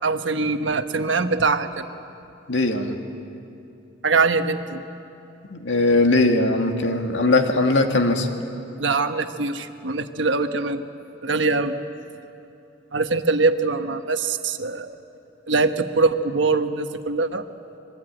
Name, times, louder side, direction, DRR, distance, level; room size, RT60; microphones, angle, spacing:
voice 1, 0.0-1.8 4.0-4.8 8.8-10.8 11.2-11.8 12.9-15.0 15.5-17.5, right 3 dB, 75° right, 8 dB, 1.3 m, -22 dB
voice 2, 2.5-3.0 5.5-8.3, left 2 dB, 75° left, 4 dB, 2.1 m, -20 dB
25.5 x 22.5 x 9.1 m, 2.8 s
head